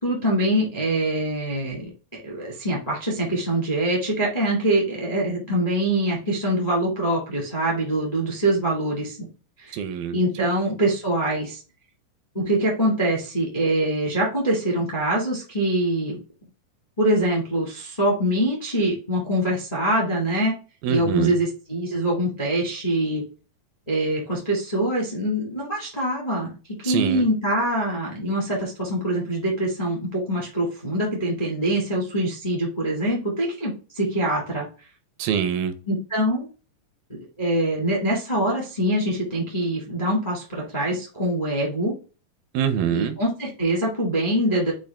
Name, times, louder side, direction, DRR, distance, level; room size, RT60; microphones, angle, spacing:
voice 1, 0.0-1.9 2.2-9.3 9.6-9.8 10.1-11.6 12.3-16.2 17.0-20.5 20.9-23.2 23.9-34.6 35.9-36.5 37.1-41.9 42.9-44.7, right 1 dB, 30° left, -3 dB, 0.6 m, -24 dB
voice 2, 9.7-10.2 20.8-21.4 26.8-27.2 35.2-35.7 42.5-43.2, right 8 dB, 85° right, 10 dB, 2.4 m, -24 dB
6.2 x 2.4 x 3.5 m, 0.34 s
omnidirectional pair, 4.2 m